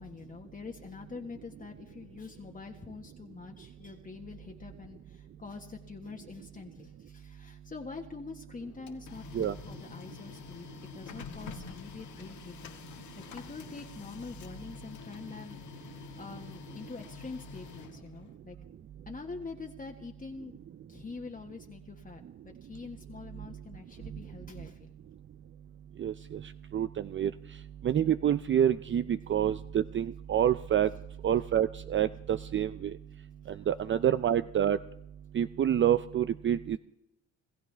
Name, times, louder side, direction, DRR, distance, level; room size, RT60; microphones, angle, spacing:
voice 1, 0.0-12.8 13.3-18.6 19.1-20.6 20.9-24.9 33.5-33.7, left 4 dB, 30° left, 1 dB, 1.6 m, -45 dB
Printer, 8.6-18.4, left 7 dB, 70° left, 1.8 m, -47 dB
voice 2, 26.0-26.4 26.7-27.3 27.8-30.9 31.2-32.9 33.7-34.8 35.3-36.8, right 10 dB, 40° right, 12 dB, 0.5 m, -27 dB
27.5 x 14.5 x 3.4 m, 0.84 s
cardioid pair, 90°, 30 cm